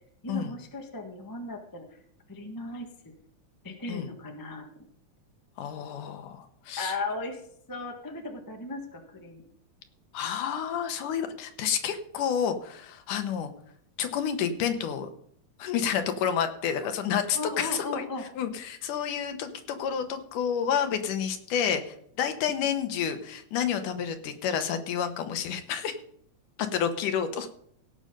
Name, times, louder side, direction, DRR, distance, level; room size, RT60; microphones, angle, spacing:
voice 1, 0.2-1.9 2.3-2.9 3.6-4.7 6.8-7.4 7.7-9.4 16.8-16.9 17.3-18.3, left 2 dB, 20° left, 2 dB, 0.5 m, -36 dB
voice 2, 5.6-6.9 10.1-13.5 14.0-15.1 15.6-18.1 18.4-26.0 26.7-27.5, left 8 dB, 85° left, 7 dB, 2.7 m, -29 dB
17.0 x 6.5 x 5.3 m, 0.65 s
omnidirectional pair, 3.5 m